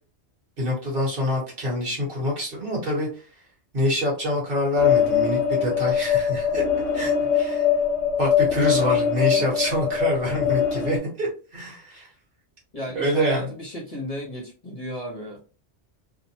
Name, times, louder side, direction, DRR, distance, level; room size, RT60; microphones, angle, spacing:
voice 1, 0.6-3.1 3.7-6.6 6.9-7.6 8.2-12.1 12.9-13.5, left 1 dB, 50° right, -2 dB, 1.3 m, -26 dB
sound 1, 4.8-11.0, left 8 dB, 70° left, 0.8 m, -22 dB
voice 2, 7.0-7.3 12.7-15.4, right 1 dB, 35° left, -3 dB, 0.7 m, -34 dB
2.7 x 2.1 x 2.8 m, 0.35 s
omnidirectional pair, 1.2 m